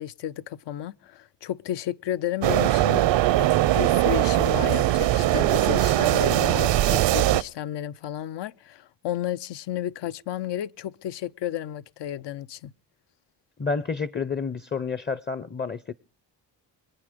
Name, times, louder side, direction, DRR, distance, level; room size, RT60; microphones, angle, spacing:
voice 1, 0.0-3.1 3.4-12.7, left 11 dB, 70° left, 0.7 m, -32 dB
sound 1, 2.4-7.4, right 14 dB, 75° right, 0.7 m, -21 dB
voice 2, 13.6-15.9, left 5 dB, 25° left, 0.6 m, -29 dB
24.5 x 8.9 x 5.1 m
cardioid pair, 80°, 44 cm